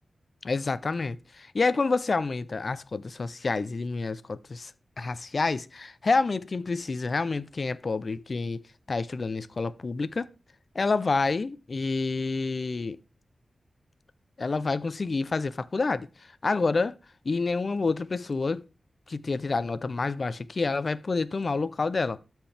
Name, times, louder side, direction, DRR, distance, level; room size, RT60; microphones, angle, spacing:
voice 1, 0.4-4.7 5.0-8.6 8.9-10.3 10.7-13.0 14.4-16.9 17.2-18.7 19.1-22.2, left 3 dB, 50° left, 0.5 m, -28 dB
13.0 x 4.4 x 3.4 m
wide cardioid pair, 105°, 0 cm